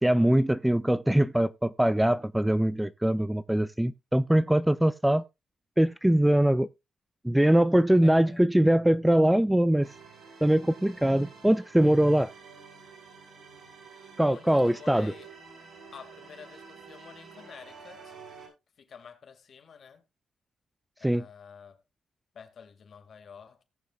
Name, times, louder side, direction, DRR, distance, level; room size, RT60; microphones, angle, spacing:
voice 1, 0.0-5.2 5.8-6.7 7.2-9.9 10.4-12.3 14.2-15.1 21.0-21.2, right 1 dB, 5° right, 0.4 m, -22 dB
voice 2, 8.0-8.4 14.2-15.3 15.9-18.1 18.8-20.0 21.0-21.8 22.3-23.6, left 6 dB, 60° left, 2.1 m, -49 dB
sound 1, 9.8-18.5, right 5 dB, 65° right, 6.7 m, -49 dB
18.5 x 6.8 x 2.3 m
cardioid pair, 95°, 0 cm